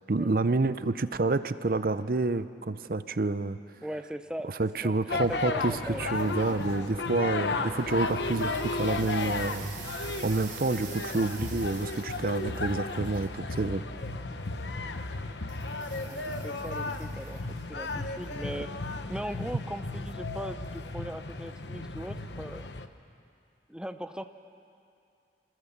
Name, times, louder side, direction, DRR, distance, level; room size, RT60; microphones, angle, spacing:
voice 1, 0.1-3.6 4.4-9.7 10.2-13.8, right 3 dB, 50° right, 13 dB, 0.6 m, -28 dB
voice 2, 3.8-4.5 4.8-6.2 16.0-18.7 19.1-22.7 23.7-24.2, equal, 5° right, 8 dB, 0.7 m, -39 dB
sound 1, 5.1-22.9, left 3 dB, 80° left, 1.0 m, -34 dB
sound 2, 6.0-15.3, right 2 dB, 25° right, 1.4 m, -54 dB
sound 3, 6.1-7.1 7.6-13.3 15.5-18.3 18.6-18.7, right 8 dB, 90° right, 3.5 m, -48 dB
27.5 x 20.5 x 7.3 m, 2.5 s
head